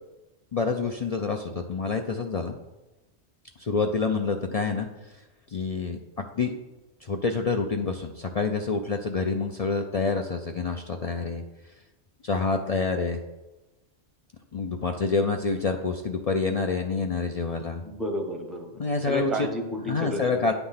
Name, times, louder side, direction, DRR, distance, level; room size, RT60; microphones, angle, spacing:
voice 1, 0.5-2.6 3.6-4.9 5.5-6.5 7.0-11.4 12.2-13.2 14.5-17.8 18.8-19.5 19.9-20.5, left 4 dB, 50° left, 4 dB, 0.4 m, -27 dB
voice 2, 17.8-20.5, equal, ahead, 3 dB, 0.7 m, -32 dB
9.5 x 3.5 x 5.7 m, 1.0 s
omnidirectional pair, 1.3 m